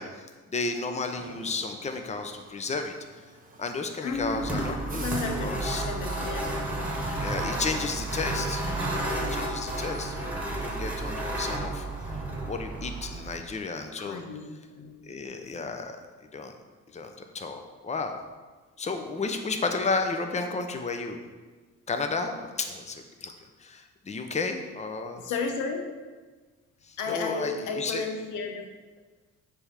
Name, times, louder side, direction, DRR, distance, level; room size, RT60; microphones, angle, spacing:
voice 1, 0.0-2.9 3.6-5.1 5.4-5.8 7.2-14.2 15.0-16.0 16.3-16.6 16.9-18.2 18.8-21.2 21.9-23.3 23.6-25.2 26.8-28.0, left 4 dB, 25° left, 5 dB, 0.7 m, -33 dB
sound 1, 1.0-11.9, right 3 dB, 30° right, 1.0 m, -48 dB
voice 2, 4.0-6.5 14.0-15.0 25.2-25.8 27.0-28.6, left 4 dB, 90° left, 4 dB, 0.8 m, -33 dB
sound 2, 4.1-13.5, right 2 dB, 5° right, 1.5 m, -32 dB
6.8 x 3.4 x 5.6 m, 1.3 s
cardioid pair, 90°, 30 cm